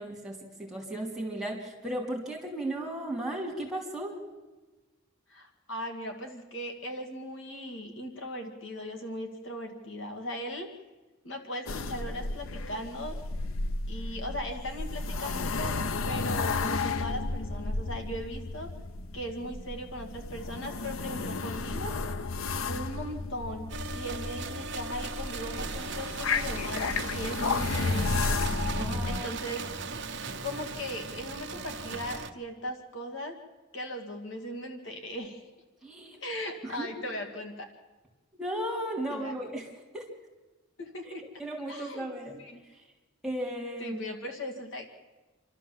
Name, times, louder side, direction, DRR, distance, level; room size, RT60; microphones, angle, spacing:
voice 1, 0.0-4.1 28.7-29.3 35.8-36.2 36.6-36.9 38.4-39.7 39.9-40.1 41.0-42.4 43.2-44.0, right 1 dB, ahead, -1 dB, 3.3 m, -35 dB
voice 2, 5.3-10.7 11.2-13.2 13.9-15.8 16.0-18.7 19.1-21.9 22.6-28.1 29.1-29.6 30.4-33.3 33.7-35.4 36.1-37.7 39.1-39.3 40.8-41.2 41.7-42.1 42.4-42.6 43.8-44.8, equal, 65° left, 4 dB, 2.2 m, -38 dB
sound 1, 11.7-29.2, left 3 dB, 85° left, 0.8 m, -33 dB
sound 2, 23.7-32.3, right 4 dB, 60° right, 1.2 m, -38 dB
27.5 x 12.5 x 7.5 m, 1.2 s
head